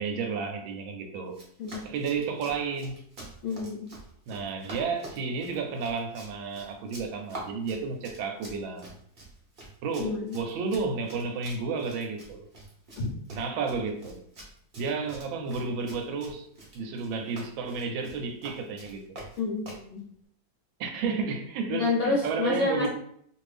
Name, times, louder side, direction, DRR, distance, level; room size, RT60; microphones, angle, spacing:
voice 1, 0.0-1.4 1.8-3.0 4.3-8.9 9.8-12.5 13.3-14.2 14.8-16.5 16.7-19.0 20.8-22.9, right 5 dB, 80° right, 1.3 m, -32 dB
Run, 1.3-19.9, right 2 dB, 55° right, 0.5 m, -47 dB
voice 2, 3.4-3.9 10.0-10.4 13.0-13.1 19.4-20.0 21.7-22.9, left 3 dB, 60° left, 0.7 m, -29 dB
2.9 x 2.6 x 3.2 m
omnidirectional pair, 2.1 m